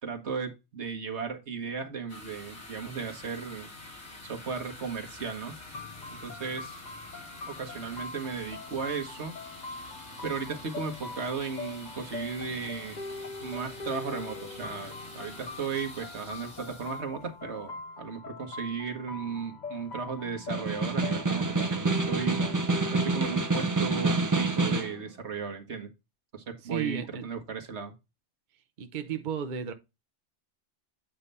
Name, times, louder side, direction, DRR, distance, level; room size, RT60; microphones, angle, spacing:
voice 1, 0.0-3.7 4.2-5.5 6.2-6.8 7.5-9.3 10.2-13.0 13.4-22.4 22.9-25.9 26.3-27.9, right 5 dB, 80° right, 1.8 m, -36 dB
sound 1, 2.1-17.8, left 2 dB, 90° left, 3.0 m, -47 dB
sound 2, 5.7-23.5, left 3 dB, 45° left, 0.8 m, -42 dB
Snare drum, 20.4-25.0, right 3 dB, 20° right, 0.6 m, -27 dB
voice 2, 26.7-27.2 28.8-29.7, right 8 dB, 50° right, 0.8 m, -33 dB
8.9 x 3.4 x 5.4 m
omnidirectional pair, 1.1 m